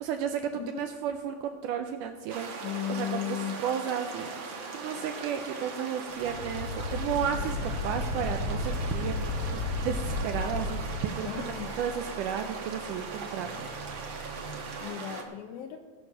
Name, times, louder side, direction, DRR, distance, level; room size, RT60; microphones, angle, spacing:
voice 1, 0.0-2.5 2.9-3.4 3.6-9.3 9.5-13.7, right 8 dB, 80° right, 6 dB, 1.9 m, -33 dB
voice 2, 0.6-0.9 2.6-3.6 11.2-11.8 14.5-15.8, left 10 dB, 80° left, 6 dB, 1.8 m, -36 dB
sound 1, 2.3-15.2, right 4 dB, 60° right, 1.3 m, -39 dB
sound 2, 6.1-14.8, right 4 dB, 40° left, 1.5 m, -46 dB
sound 3, 6.2-11.1, left 3 dB, 55° left, 2.4 m, -33 dB
16.5 x 6.8 x 6.2 m, 1.5 s
omnidirectional pair, 4.2 m